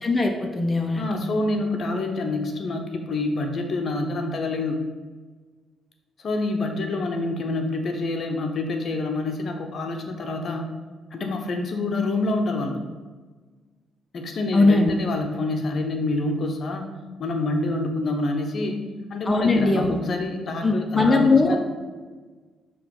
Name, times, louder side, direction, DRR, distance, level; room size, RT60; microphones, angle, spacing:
voice 1, 0.0-1.1 14.5-14.9 19.3-20.0 20.6-21.6, left 3 dB, 20° left, 2 dB, 0.7 m, -20 dB
voice 2, 1.0-4.8 6.2-10.7 11.1-12.8 14.1-16.9 17.2-18.8 19.1-21.6, left 2 dB, 50° left, 3 dB, 0.8 m, -27 dB
6.5 x 3.1 x 5.2 m, 1.4 s
cardioid pair, 90°, 0 cm